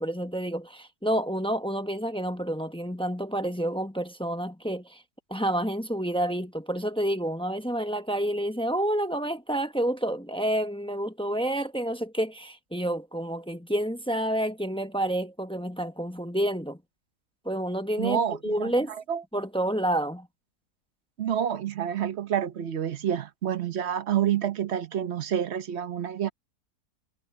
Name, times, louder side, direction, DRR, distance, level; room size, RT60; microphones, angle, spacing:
voice 1, 0.0-5.0 5.3-16.8 17.4-18.9 19.3-20.3, right 1 dB, 5° left, 0.7 m, -29 dB
voice 2, 18.0-18.7 19.1-19.2 21.2-26.3, right 9 dB, 50° right, 1.0 m, -28 dB
omnidirectional pair, 1.8 m